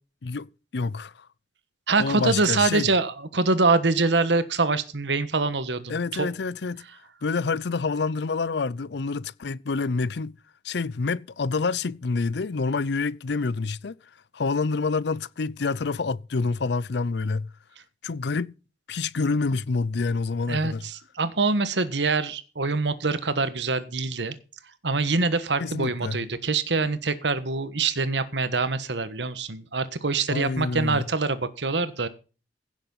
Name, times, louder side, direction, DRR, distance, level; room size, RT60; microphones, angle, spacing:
voice 1, 0.2-1.3 2.0-2.9 5.9-6.8 7.2-10.4 10.6-13.9 14.3-17.5 18.0-18.5 18.9-20.8 25.6-26.2 30.3-31.1, left 4 dB, 65° left, 0.5 m, -27 dB
voice 2, 1.9-6.3 20.5-24.3 24.8-32.1, right 3 dB, 75° right, 1.4 m, -25 dB
16.0 x 7.2 x 5.5 m
head